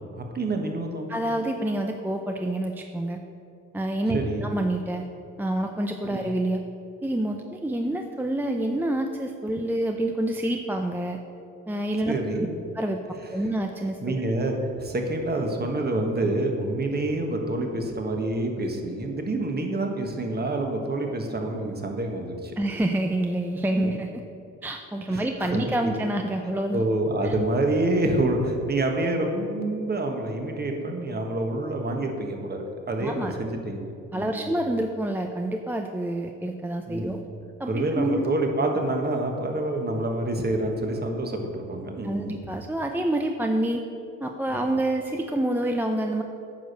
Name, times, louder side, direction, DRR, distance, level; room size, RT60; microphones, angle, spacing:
voice 1, 0.1-1.1 4.1-4.5 6.1-6.2 12.1-12.5 13.4-13.5 14.0-22.5 23.7-24.0 25.1-25.9 26.7-34.5 36.9-37.2 37.7-42.5, right 2 dB, 35° right, 3 dB, 1.4 m, -27 dB
voice 2, 1.1-3.2 3.7-5.1 5.4-6.6 7.0-11.2 11.7-12.5 12.7-13.0 13.3-14.2 22.6-24.2 24.6-26.8 27.2-27.3 33.0-33.3 34.1-37.2 37.6-38.3 42.0-43.8 44.2-46.2, right 1 dB, 5° right, 4 dB, 0.5 m, -27 dB
9.2 x 5.0 x 6.6 m, 2.5 s
cardioid pair, 90°, 30 cm